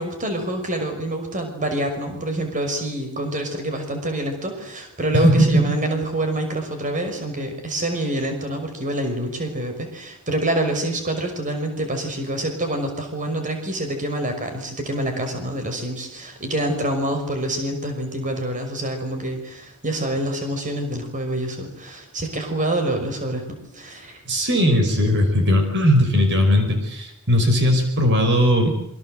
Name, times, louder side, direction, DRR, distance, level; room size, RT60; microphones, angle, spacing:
voice 1, 0.0-24.2, right 1 dB, 35° right, 5 dB, 5.7 m, -26 dB
voice 2, 5.1-5.6 24.3-28.7, equal, 55° right, 5 dB, 5.3 m, -18 dB
27.5 x 24.5 x 7.9 m, 0.72 s
head